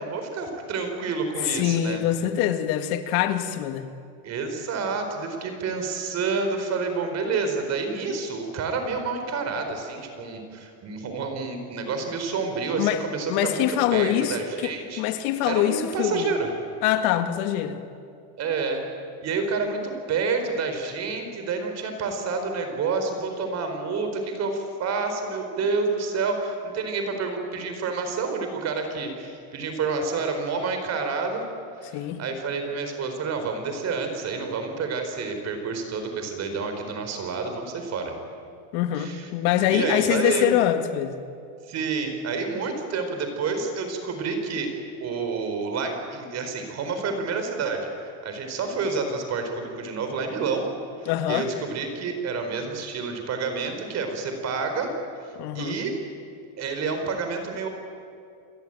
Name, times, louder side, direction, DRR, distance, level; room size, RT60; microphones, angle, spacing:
voice 1, 0.0-2.0 4.2-15.0 15.4-16.5 18.4-18.8 19.2-31.4 31.8-38.1 39.0-39.3 39.7-40.5 41.7-44.7 45.0-50.7 51.0-54.9 55.2-56.0 56.6-57.7, right 4 dB, 35° right, 6 dB, 4.7 m, -29 dB
voice 2, 1.4-3.9 12.8-13.0 13.3-16.3 16.8-17.8 31.9-32.2 38.7-41.2 51.1-51.5 55.4-55.8, left 12 dB, 75° left, 8 dB, 2.2 m, -24 dB
29.0 x 21.5 x 9.2 m, 2.4 s
cardioid pair, 170°, 44 cm